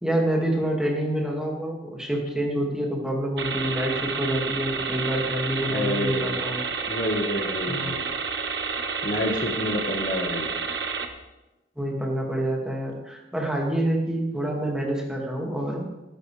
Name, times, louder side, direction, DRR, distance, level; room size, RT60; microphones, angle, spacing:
voice 1, 0.0-6.6 7.7-7.9 11.8-15.9, right 1 dB, 5° right, -2 dB, 2.3 m, -27 dB
sound 1, 3.4-11.1, right 5 dB, 75° right, 1.2 m, -30 dB
voice 2, 5.7-6.4 6.9-8.0 9.0-10.5, left 1 dB, 50° left, 2 dB, 1.7 m, -28 dB
18.5 x 10.0 x 3.5 m, 1.0 s
head